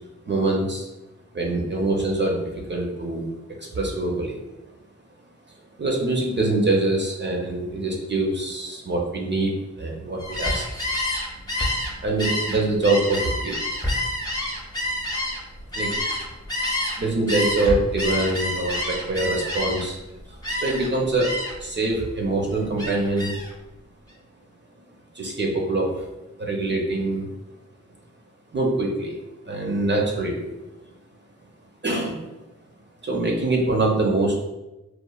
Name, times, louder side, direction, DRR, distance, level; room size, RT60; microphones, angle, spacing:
voice 1, 0.3-0.9 1.3-3.3 3.6-4.4 5.8-10.6 12.0-13.6 15.7-16.3 17.0-20.0 20.3-23.4 25.1-26.1 26.4-27.3 28.5-29.2 29.4-30.5 31.8-32.3 33.0-34.4, right 2 dB, 40° right, -1 dB, 0.5 m, -24 dB
Gull seagull, 10.2-17.0 17.3-20.0 20.4-20.9 21.2-21.7 22.0-23.5, left 1 dB, 15° left, 0.6 m, -28 dB
2.9 x 2.0 x 2.2 m, 1.0 s
wide cardioid pair, 65°, 30 cm